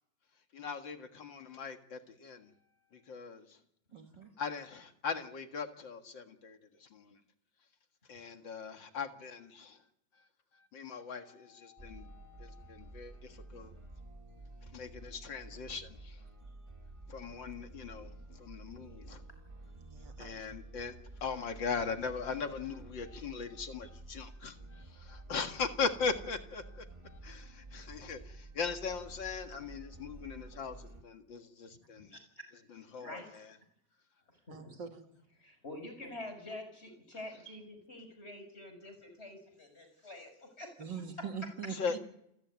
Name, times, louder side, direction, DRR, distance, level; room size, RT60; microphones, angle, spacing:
voice 1, 0.5-2.5 3.1-3.4 4.4-7.0 8.1-9.8 10.7-13.1 13.5-13.7 14.7-16.1 17.1-18.1 18.4-19.2 20.2-20.9 21.2-24.6 25.0-26.6 27.0-30.7 31.0-32.1 32.7-33.5 41.7-41.9, left 5 dB, 80° left, 6 dB, 2.5 m, -39 dB
voice 2, 3.9-4.3 19.8-20.5 34.5-35.0 40.8-42.0, right 6 dB, 75° right, 5 dB, 3.0 m, -43 dB
sound 1, 11.8-31.0, right 2 dB, 20° right, 1.5 m, -51 dB
voice 3, 33.0-33.3 34.5-34.7 35.4-40.7, left 1 dB, 35° left, 7 dB, 6.4 m, -47 dB
28.5 x 15.0 x 9.5 m, 0.77 s
omnidirectional pair, 2.0 m